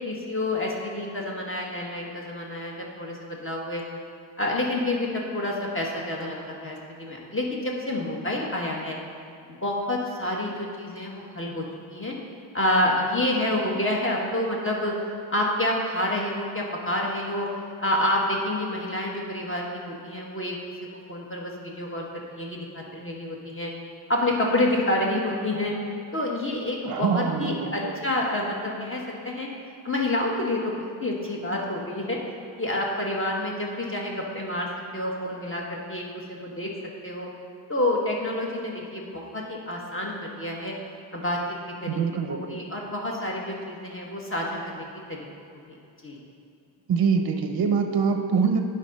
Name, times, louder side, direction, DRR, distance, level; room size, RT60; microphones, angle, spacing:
voice 1, 0.0-3.8 4.4-9.0 9.5-11.6 11.9-12.1 12.5-14.9 15.3-17.5 17.8-20.6 21.1-23.7 24.1-25.7 26.1-29.5 29.8-32.2 32.6-34.7 34.9-36.7 37.0-37.3 37.7-40.7 41.1-41.4 41.8-42.0 42.3-45.3 45.7-45.8 46.0-46.2, left 1 dB, 25° left, -2 dB, 1.3 m, -28 dB
voice 2, 26.8-27.9 41.9-42.6 46.9-48.6, right 6 dB, 50° right, 5 dB, 0.6 m, -24 dB
10.0 x 3.8 x 5.3 m, 2.5 s
wide cardioid pair, 90°, 49 cm